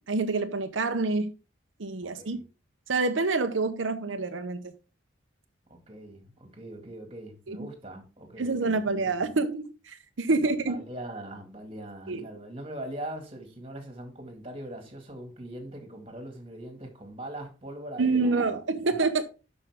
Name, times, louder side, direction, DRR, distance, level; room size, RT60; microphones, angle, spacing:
voice 1, 0.1-1.3 1.8-2.4 2.9-4.7 7.5-7.7 8.4-10.8 12.1-12.2 18.0-19.2, right 3 dB, 90° right, 0.8 m, -27 dB
voice 2, 2.0-2.4 5.7-9.3 10.4-18.5 18.8-19.0, right 1 dB, 30° right, 2.2 m, -41 dB
11.5 x 5.3 x 3.6 m
head